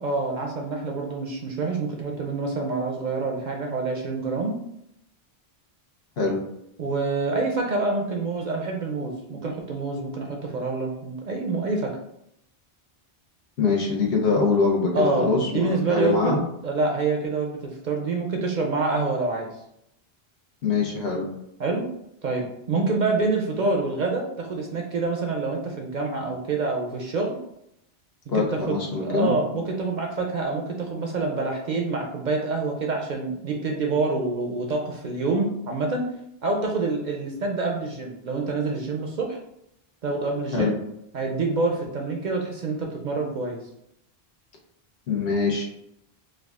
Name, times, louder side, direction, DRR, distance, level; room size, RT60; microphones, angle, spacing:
voice 1, 0.0-4.6 6.8-11.9 14.9-16.3 16.6-19.5 21.6-21.9 22.2-27.4 28.3-36.1 36.4-39.4 40.0-40.7 41.1-43.6, right 3 dB, 55° right, 1 dB, 0.6 m, -27 dB
voice 2, 13.6-16.4 20.6-21.3 28.3-29.3 40.5-40.7 45.1-45.6, left 4 dB, 70° left, -1 dB, 1.0 m, -23 dB
4.7 x 2.2 x 2.3 m, 0.79 s
omnidirectional pair, 1.0 m